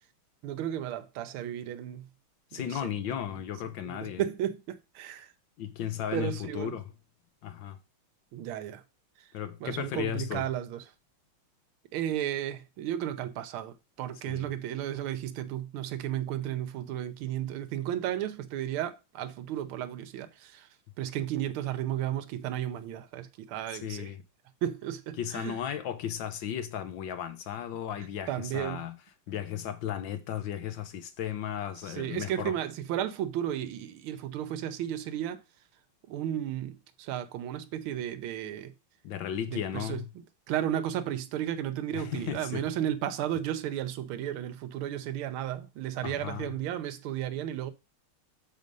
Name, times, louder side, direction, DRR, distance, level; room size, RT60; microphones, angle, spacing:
voice 1, 0.4-2.1 2.5-2.8 3.8-5.3 6.1-6.7 8.3-8.8 9.2-9.3 9.6-10.8 11.9-20.7 21.0-24.1 24.6-25.5 28.3-28.8 31.8-35.4 36.1-38.7 39.5-40.0 40.5-47.7, right 11 dB, 85° right, 1.6 m, -34 dB
voice 2, 2.5-4.2 5.6-6.9 7.4-7.8 9.3-10.5 14.3-14.5 23.7-24.2 25.2-29.0 29.3-32.5 39.0-40.1 41.9-42.7 46.0-46.5, left 10 dB, 70° left, 1.5 m, -35 dB
6.4 x 4.9 x 5.3 m
omnidirectional pair, 2.3 m